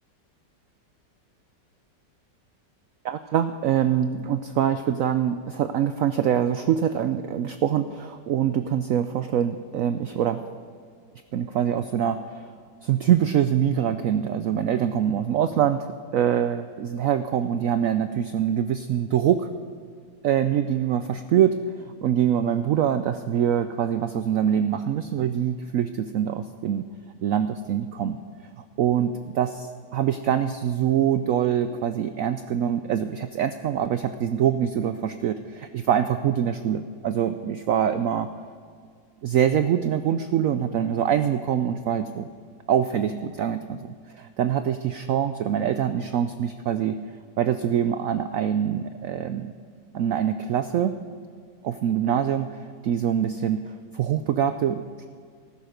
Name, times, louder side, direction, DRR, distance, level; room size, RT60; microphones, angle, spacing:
voice 1, 3.0-10.4 11.3-12.5 12.8-15.9 16.1-19.5 20.2-26.9 27.2-28.2 28.8-38.3 39.2-42.3 42.7-47.0 47.4-49.5 49.9-51.0 51.6-55.1, right 9 dB, 80° right, 10 dB, 0.7 m, -24 dB
14.5 x 13.0 x 5.1 m, 2.1 s
omnidirectional pair, 1.9 m